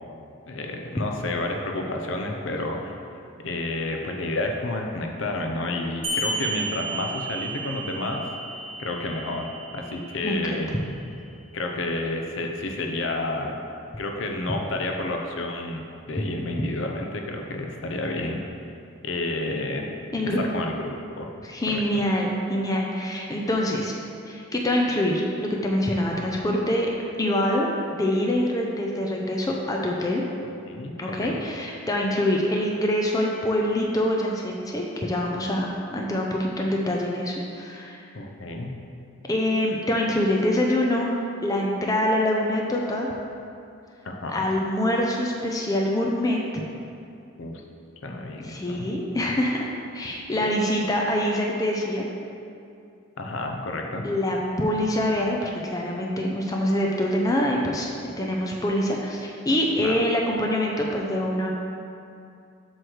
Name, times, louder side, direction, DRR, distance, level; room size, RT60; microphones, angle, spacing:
voice 1, 0.5-3.0 3.4-8.3 8.8-10.7 11.5-13.6 14.0-18.4 19.0-19.9 20.2-21.3 21.7-22.0 30.7-31.4 38.1-38.7 44.0-44.4 47.4-47.6 48.0-48.9 50.4-50.5 53.2-54.1 59.8-60.0, left 2 dB, 60° left, 2 dB, 0.6 m, -30 dB
sound 1, 6.0-11.0, right 2 dB, 25° right, 1.0 m, -33 dB
voice 2, 10.2-10.6 20.1-20.4 21.4-23.9 24.3-26.9 27.2-30.2 31.0-35.7 35.9-38.0 39.3-43.1 44.3-46.4 48.4-52.0 54.0-61.5, left 1 dB, 15° left, -1 dB, 0.5 m, -25 dB
7.7 x 3.2 x 6.3 m, 2.5 s
head